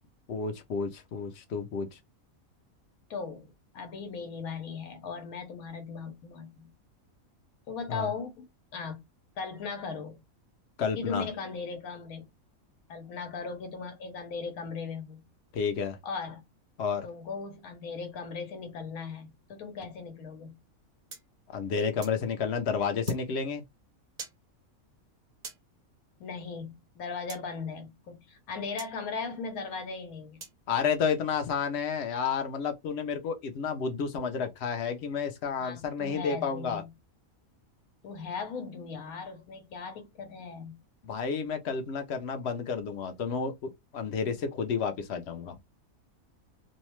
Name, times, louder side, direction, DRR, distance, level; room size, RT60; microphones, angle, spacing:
voice 1, 0.3-1.9 7.9-8.1 10.8-11.3 15.5-16.0 16.8-17.1 21.5-23.6 30.7-36.8 41.0-45.6, left 6 dB, 65° left, 0.7 m, -31 dB
voice 2, 3.1-6.7 7.7-8.5 8.7-9.0 9.4-10.2 11.0-12.3 12.9-15.2 16.0-16.4 17.0-20.6 26.2-30.4 35.6-36.9 38.0-40.8, left 5 dB, 90° left, 1.2 m, -38 dB
sound 1, 21.1-22.2 23.1-23.2 24.2-24.4 25.4-25.6 27.3-27.4 28.8-28.9 30.4-30.6, right 5 dB, 50° right, 0.5 m, -44 dB
2.7 x 2.1 x 3.0 m
omnidirectional pair, 1.5 m